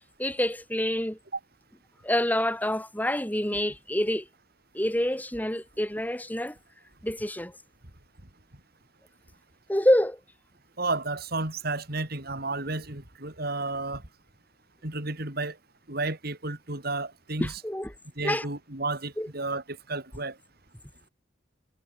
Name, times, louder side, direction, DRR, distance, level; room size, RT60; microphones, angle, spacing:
voice 1, 0.2-1.2 2.0-4.3 4.7-6.6 7.0-7.5 9.7-10.2 17.4-17.9 18.2-18.5 19.2-19.3, left 1 dB, 10° left, 3.8 m, -27 dB
voice 2, 10.8-14.0 14.8-15.6 15.9-17.6 18.2-20.4, right 3 dB, 55° right, 4.2 m, -32 dB
head